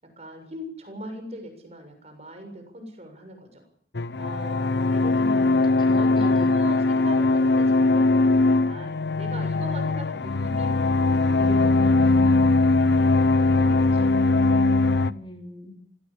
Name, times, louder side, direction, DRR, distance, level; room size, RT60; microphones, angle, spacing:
voice 1, 0.2-3.6 4.2-5.5 6.0-10.9 11.2-12.6 13.4-14.1, equal, 35° right, 5 dB, 7.0 m, -40 dB
sound 1, 3.9-15.1, left 3 dB, 75° left, 0.9 m, -20 dB
voice 2, 5.2-6.6 15.1-15.7, equal, 30° left, 3 dB, 3.6 m, -39 dB
25.5 x 17.0 x 8.7 m, 0.63 s
head